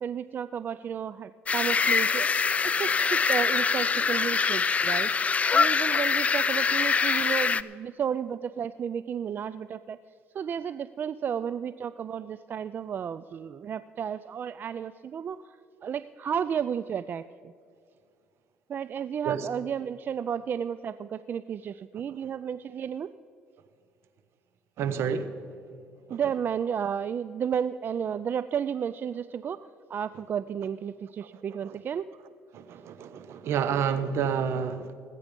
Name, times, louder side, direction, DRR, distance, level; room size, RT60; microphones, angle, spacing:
voice 1, 0.0-2.3 2.6-5.1 5.5-10.0 10.3-17.5 18.7-23.1 26.1-29.6 29.9-32.1, right 8 dB, 45° right, 15 dB, 0.4 m, -32 dB
sound 1, 1.5-7.6, left 5 dB, 30° left, 0.4 m, -24 dB
voice 2, 24.8-25.6 26.1-26.2 31.2-31.8 32.5-34.9, right 7 dB, 65° right, 11 dB, 1.0 m, -30 dB
19.5 x 8.5 x 5.3 m, 2.4 s
supercardioid pair, 90°, 5 cm